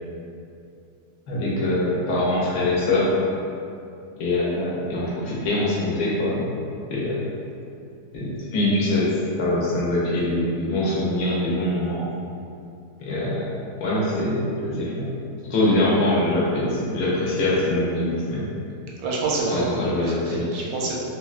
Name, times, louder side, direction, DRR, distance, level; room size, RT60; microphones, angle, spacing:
voice 1, 1.3-3.1 4.2-6.5 6.9-7.2 8.1-9.1 9.4-12.1 13.0-13.5 13.8-15.1 15.5-18.4 19.5-20.5, left 1 dB, 70° left, -6 dB, 1.1 m, -23 dB
voice 2, 19.0-21.0, right 3 dB, 75° right, -4 dB, 1.0 m, -27 dB
3.4 x 2.1 x 2.4 m, 2.5 s
omnidirectional pair, 1.6 m